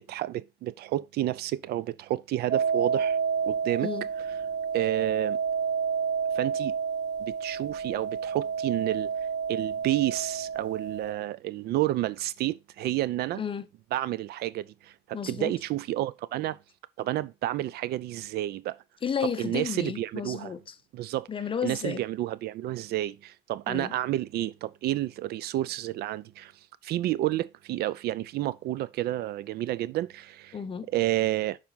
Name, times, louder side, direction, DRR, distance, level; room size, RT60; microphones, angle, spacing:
voice 1, 0.0-3.2 3.4-3.9 4.7-5.4 6.3-6.8 7.2-9.1 9.5-13.4 13.9-16.6 17.0-18.8 19.4-20.5 20.9-21.3 21.6-26.5 26.8-30.6 30.9-31.6, right 15 dB, 70° right, 0.5 m, -30 dB
sound 1, 2.5-11.1, right 6 dB, 45° right, 1.1 m, -30 dB
voice 2, 13.3-13.7 15.1-15.5 19.0-20.8 21.3-22.0 23.7-23.9 30.5-30.9, left 7 dB, 30° left, 0.8 m, -32 dB
7.2 x 5.0 x 3.9 m
cardioid pair, 110°, 17 cm